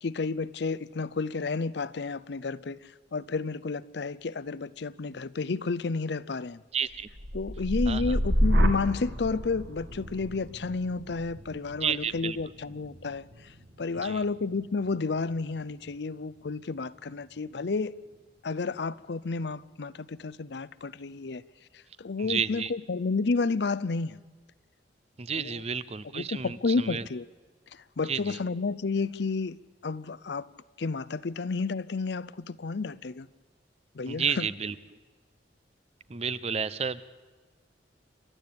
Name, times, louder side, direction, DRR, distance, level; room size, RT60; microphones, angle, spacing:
voice 1, 0.0-2.8 3.1-6.6 7.3-13.3 13.8-17.9 18.4-21.4 22.0-24.2 25.3-25.6 26.1-27.3 28.0-29.6 29.8-30.5 30.8-33.3 33.9-34.5, left 4 dB, 65° left, 0.6 m, -31 dB
voice 2, 6.7-7.1 7.9-8.1 11.8-12.4 14.0-14.2 22.2-22.7 25.2-27.1 28.1-28.4 34.1-34.7 36.1-37.0, right 6 dB, 35° right, 0.6 m, -31 dB
sound 1, 6.9-15.0 15.4-15.9, equal, 75° right, 2.2 m, -30 dB
29.0 x 12.5 x 8.6 m
head